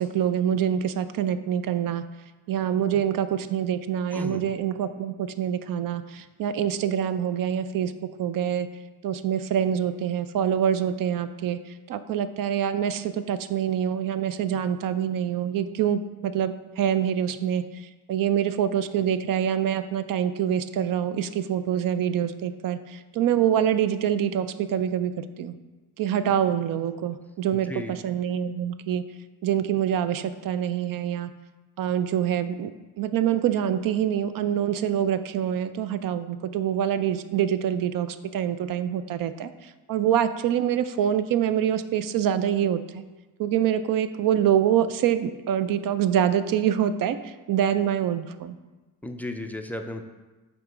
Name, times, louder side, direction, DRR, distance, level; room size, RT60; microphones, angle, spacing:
voice 1, 0.0-2.0 2.5-7.9 8.2-8.7 9.0-11.6 11.9-25.5 26.0-29.0 29.4-31.3 31.8-32.7 33.0-43.0 43.4-48.6, right 9 dB, 60° right, 12 dB, 0.5 m, -25 dB
voice 2, 4.1-4.4 27.7-27.9 49.0-50.0, left 1 dB, 5° left, 4 dB, 0.3 m, -34 dB
6.6 x 3.6 x 5.0 m, 1.2 s
cardioid pair, 115°, 39 cm